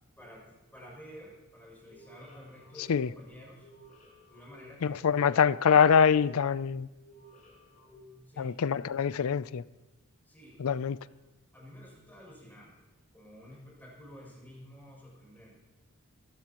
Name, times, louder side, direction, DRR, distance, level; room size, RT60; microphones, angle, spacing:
voice 1, 0.2-3.7 4.3-5.5 8.3-8.5 10.3-10.6 11.5-12.9 13.1-15.6, left 1 dB, 10° left, 6.9 m, -51 dB
sound 1, 1.8-8.7, equal, 35° left, 7.6 m, -56 dB
voice 2, 4.8-6.9 8.4-9.6 10.6-11.0, left 7 dB, 70° left, 0.4 m, -24 dB
24.5 x 17.0 x 3.0 m
head